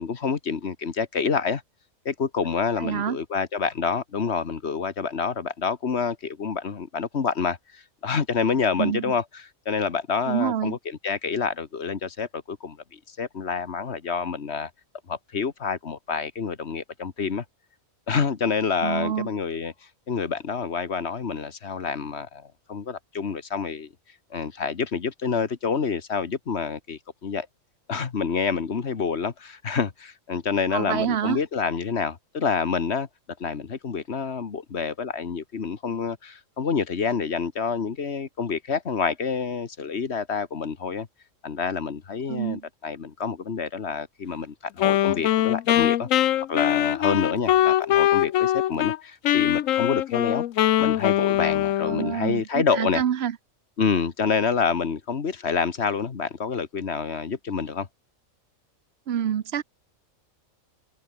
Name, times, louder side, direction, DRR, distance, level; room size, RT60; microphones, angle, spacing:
voice 1, 0.0-1.6 2.0-14.7 15.1-17.4 18.1-19.7 20.1-23.9 24.3-27.5 27.9-33.1 33.4-41.1 41.4-46.1 46.5-50.4 50.8-53.0 53.8-57.9, left 5 dB, 50° left, 1.6 m, -28 dB
voice 2, 2.8-3.2 8.8-9.1 10.3-10.8 18.8-19.3 30.7-31.4 42.3-42.7 51.8-53.4 59.1-59.6, right 9 dB, 55° right, 0.9 m, -27 dB
Wind instrument woodwind instrument, 44.8-49.0 49.2-52.2, left 12 dB, 75° left, 1.0 m, -22 dB
omnidirectional pair, 1.4 m